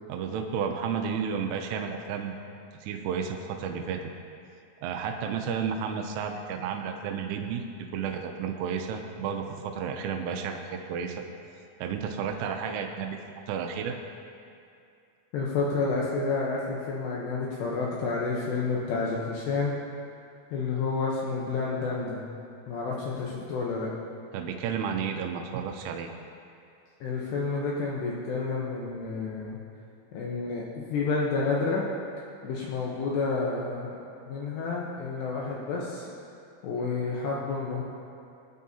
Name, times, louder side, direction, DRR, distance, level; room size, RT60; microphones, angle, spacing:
voice 1, 0.1-2.4 2.8-4.0 4.8-7.6 7.9-11.2 11.8-13.2 13.5-13.9 24.3-26.1, right 7 dB, 85° right, 3 dB, 3.3 m, -32 dB
voice 2, 15.3-19.7 20.5-22.2 22.7-23.9 27.0-29.6 30.1-31.8 32.4-36.1 36.6-37.8, left 4 dB, 75° left, -4 dB, 2.8 m, -30 dB
22.0 x 9.5 x 2.8 m, 2.5 s
omnidirectional pair, 5.6 m